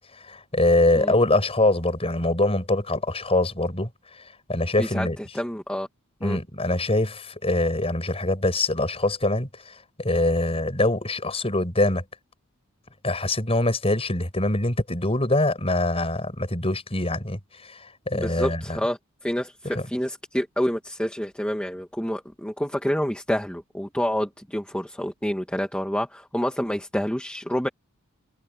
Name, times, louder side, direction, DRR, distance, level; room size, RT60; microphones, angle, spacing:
voice 1, 0.1-3.9 4.5-5.2 6.2-12.0 13.0-18.8 19.7-19.8, left 2 dB, 25° left, 6.7 m, -24 dB
voice 2, 5.3-5.9 6.2-6.4 18.1-27.7, equal, 5° left, 1.5 m, -28 dB
head